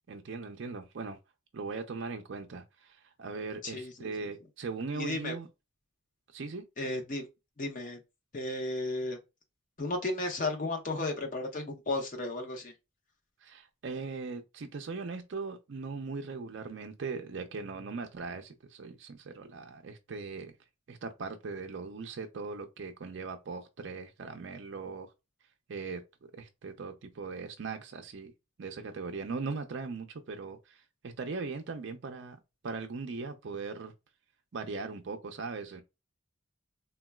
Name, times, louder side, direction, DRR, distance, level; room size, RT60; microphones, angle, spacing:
voice 1, 0.1-1.2 1.5-5.5 6.3-6.7 13.4-20.6 20.9-25.1 25.7-26.0 26.3-28.3 28.6-33.9 34.5-35.8, right 4 dB, 55° right, 0.4 m, -39 dB
voice 2, 3.6-4.1 4.9-5.3 6.8-7.2 7.6-8.0 8.3-9.2 9.8-12.7, left 2 dB, 40° left, 0.6 m, -34 dB
3.8 x 2.2 x 2.2 m
head